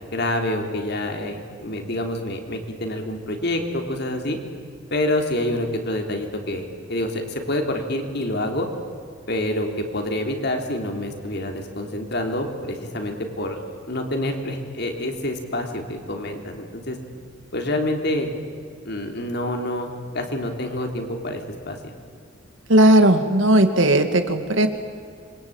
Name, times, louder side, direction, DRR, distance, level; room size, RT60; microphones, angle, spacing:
voice 1, 0.1-4.4 4.9-6.6 6.9-8.7 9.3-13.6 13.9-17.0 17.5-18.3 18.8-21.9, left 1 dB, 55° left, 3 dB, 3.5 m, -27 dB
voice 2, 22.7-24.7, right 1 dB, 75° right, 7 dB, 2.2 m, -16 dB
27.5 x 23.5 x 8.9 m, 2.2 s
head